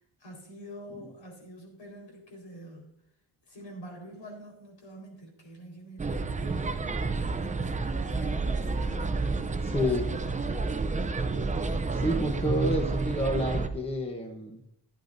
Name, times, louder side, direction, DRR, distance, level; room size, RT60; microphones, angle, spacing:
voice 1, 0.2-2.9 3.5-9.3 9.7-10.9, right 1 dB, 60° left, 1 dB, 4.5 m, -45 dB
sound 1, 6.0-13.7, right 3 dB, 15° right, 0.5 m, -30 dB
voice 2, 9.6-10.1 11.9-14.6, equal, 10° left, 3 dB, 0.9 m, -29 dB
15.0 x 10.5 x 2.6 m, 0.72 s
wide cardioid pair, 150°, 50 cm